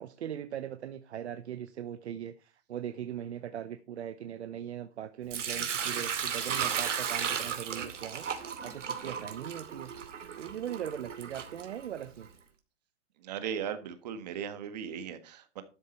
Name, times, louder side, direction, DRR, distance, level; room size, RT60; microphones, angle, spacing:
voice 1, 0.0-8.3 8.6-9.9 10.4-12.3, right 10 dB, 65° right, 0.9 m, -40 dB
Sink (filling or washing) / Liquid, 5.3-12.2, right 7 dB, 90° right, 2.6 m, -35 dB
voice 2, 13.2-15.6, right 8 dB, 35° right, 1.5 m, -37 dB
12.5 x 6.9 x 4.4 m
hypercardioid pair, 170°, 36 cm